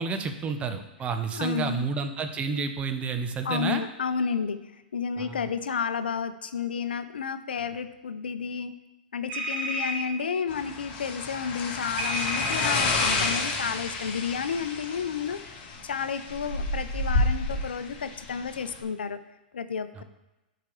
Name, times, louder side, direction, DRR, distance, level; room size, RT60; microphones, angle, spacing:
voice 1, 0.0-3.8 5.2-5.4 20.0-20.1, right 5 dB, 25° right, 7 dB, 0.8 m, -30 dB
voice 2, 1.3-1.9 3.4-8.8 9.1-19.2 19.5-20.0, left 6 dB, 85° left, 11 dB, 0.6 m, -31 dB
sound 1, 9.3-10.0 12.0-13.3, equal, 45° right, 1.5 m, -30 dB
sound 2, 10.5-18.8, left 3 dB, 40° left, 1.6 m, -30 dB
11.5 x 4.8 x 3.3 m, 1.0 s
hypercardioid pair, 115°, 5 cm